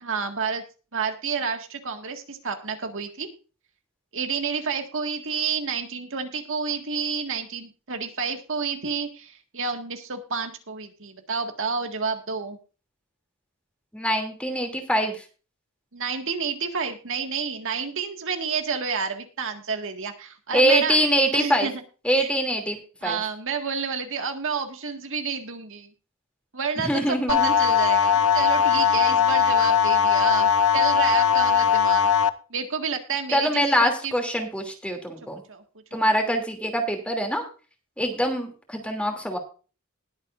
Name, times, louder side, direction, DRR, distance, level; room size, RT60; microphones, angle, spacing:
voice 1, 0.0-0.6 0.9-3.3 4.1-12.6 15.9-21.0 21.3-21.8 22.1-22.3 23.0-25.9 26.5-32.1 32.5-34.1 35.5-35.6 35.9-36.0, right 5 dB, 65° right, 5 dB, 1.8 m, -30 dB
voice 2, 13.9-15.2 20.5-21.7 22.0-22.8 23.0-23.2 26.8-27.5 33.3-35.4 35.9-37.5 38.0-39.4, equal, 5° left, 3 dB, 2.7 m, -24 dB
sound 1, 27.3-32.3, left 7 dB, 75° left, 0.8 m, -19 dB
20.5 x 8.1 x 2.5 m, 0.35 s
head